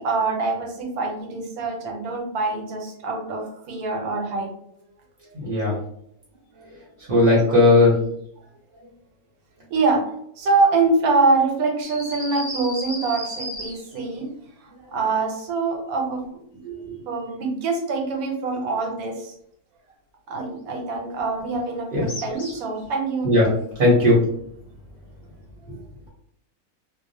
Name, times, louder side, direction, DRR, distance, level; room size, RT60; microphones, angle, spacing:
voice 1, 0.0-4.6 5.2-5.3 6.6-6.8 7.0-7.5 9.7-14.3 14.6-16.6 17.1-19.3 20.3-23.3, right 3 dB, 80° right, 1 dB, 1.1 m, -25 dB
voice 2, 5.3-5.7 7.1-7.9 16.6-16.8 23.2-23.4 23.8-24.2, left 2 dB, 45° right, -5 dB, 0.8 m, -16 dB
sound 1, 11.8-14.1 22.1-22.8, equal, 35° left, 0.4 m, -34 dB
2.4 x 2.0 x 2.6 m, 0.70 s
omnidirectional pair, 1.5 m